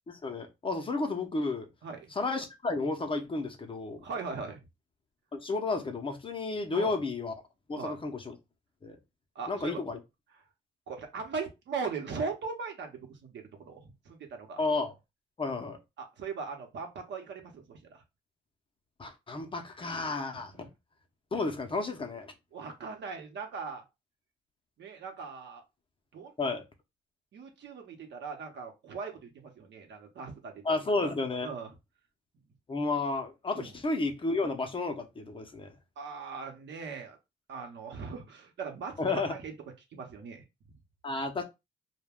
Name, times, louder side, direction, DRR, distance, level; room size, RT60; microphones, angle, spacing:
voice 1, 0.1-1.7 2.1-4.0 5.3-7.3 7.7-8.3 8.8-9.0 9.5-10.0 14.6-14.9 15.4-15.8 19.0-20.7 21.3-22.3 26.4-26.6 30.6-31.5 32.7-35.7 39.0-39.3 41.0-41.4, left 3 dB, 25° left, 0.6 m, -32 dB
voice 2, 4.0-4.6 6.7-7.0 7.8-8.0 9.3-9.8 10.9-14.6 16.0-18.0 22.5-23.8 24.8-25.6 26.1-26.3 27.3-31.1 31.4-31.7 33.5-33.7 36.0-37.2 37.5-39.5 39.9-40.4, right 5 dB, 65° right, 0.8 m, -39 dB
2.2 x 2.2 x 3.4 m
cardioid pair, 90°, 20 cm